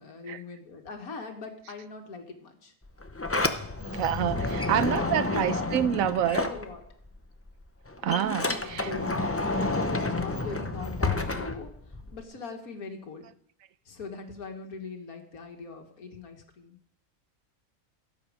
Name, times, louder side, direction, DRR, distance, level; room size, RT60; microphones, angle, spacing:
voice 1, 0.0-2.7 4.7-6.8 8.1-11.7 12.1-13.3 13.9-16.8, left 4 dB, 85° left, 2.2 m, -41 dB
Sliding door, 2.8-7.2 7.5-12.2, left 2 dB, 25° left, 0.3 m, -30 dB
voice 2, 3.9-6.5 8.0-8.9, right 10 dB, 70° right, 1.1 m, -27 dB
17.0 x 7.7 x 5.0 m
omnidirectional pair, 1.5 m